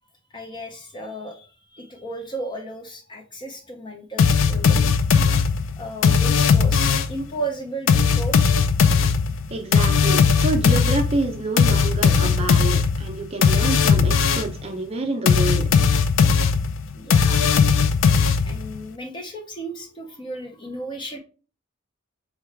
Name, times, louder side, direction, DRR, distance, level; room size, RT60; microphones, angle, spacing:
voice 1, 0.3-1.5 1.7-4.9 5.8-8.4 16.9-17.9 18.4-21.2, right 1 dB, 25° left, 3 dB, 0.6 m, -34 dB
sound 1, 4.2-7.2 7.9-14.6 15.3-18.8, left 5 dB, 75° left, 0.4 m, -18 dB
voice 2, 9.5-15.6, right 2 dB, 30° right, 4 dB, 0.5 m, -28 dB
4.6 x 2.3 x 3.2 m, 0.35 s
head